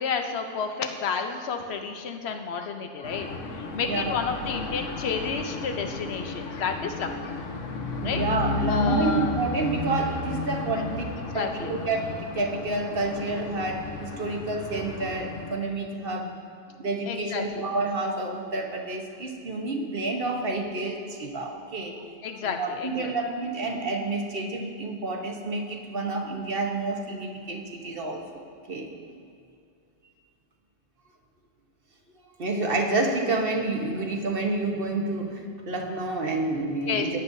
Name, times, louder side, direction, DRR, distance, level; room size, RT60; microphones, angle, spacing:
voice 1, 0.0-7.4 8.0-8.2 8.7-9.3 11.3-11.7 17.1-17.6 22.2-23.1 36.9-37.2, left 5 dB, 60° left, 6 dB, 1.0 m, -31 dB
sound 1, 3.0-15.6, left 2 dB, 90° left, 1.3 m, -32 dB
voice 2, 3.8-4.2 8.0-16.3 16.8-22.0 22.4-28.9 32.4-37.2, right 2 dB, 50° right, 2 dB, 1.2 m, -29 dB
17.0 x 9.8 x 2.7 m, 2.4 s
omnidirectional pair, 1.3 m